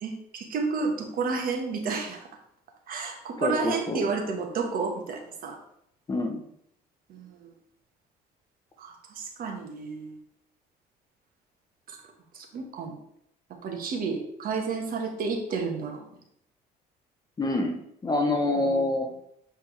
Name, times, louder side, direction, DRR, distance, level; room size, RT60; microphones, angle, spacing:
voice 1, 0.0-2.3 2.9-5.6 7.1-7.5 8.8-10.2 11.9-12.0 12.3-13.0 13.6-16.0 18.6-18.8, right 4 dB, 60° right, 3 dB, 1.4 m, -31 dB
voice 2, 3.4-4.0 6.1-6.4 17.4-17.7 18.0-19.1, left 2 dB, 25° left, 3 dB, 0.9 m, -26 dB
7.8 x 4.5 x 3.3 m, 0.73 s
cardioid pair, 110°, 17 cm